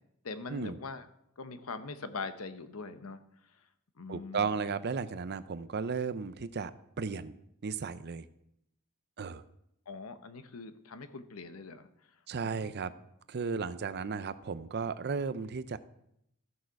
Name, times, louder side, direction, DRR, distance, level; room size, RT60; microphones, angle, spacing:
voice 1, 0.2-1.1 1.4-3.7 4.0-4.6 9.9-12.2 12.4-12.7, left 4 dB, 80° left, 10 dB, 0.9 m, -43 dB
voice 2, 4.1-6.7 7.0-7.4 7.6-8.3 9.2-9.4 12.3-12.9 13.3-15.8, right 5 dB, 50° right, 14 dB, 0.5 m, -34 dB
14.5 x 6.4 x 4.6 m, 0.77 s
head